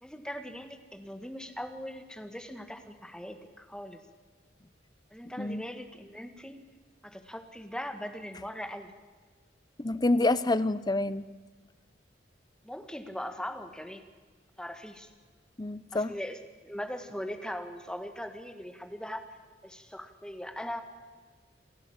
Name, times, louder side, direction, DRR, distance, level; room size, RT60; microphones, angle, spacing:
voice 1, 0.0-4.0 5.1-6.6 7.0-8.9 12.6-14.0 14.6-15.1 15.9-19.2 19.6-20.8, equal, 5° left, 7 dB, 1.7 m, -40 dB
voice 2, 9.8-11.2 15.6-16.1, left 2 dB, 25° left, 15 dB, 0.7 m, -27 dB
28.5 x 11.5 x 8.7 m, 1.4 s
head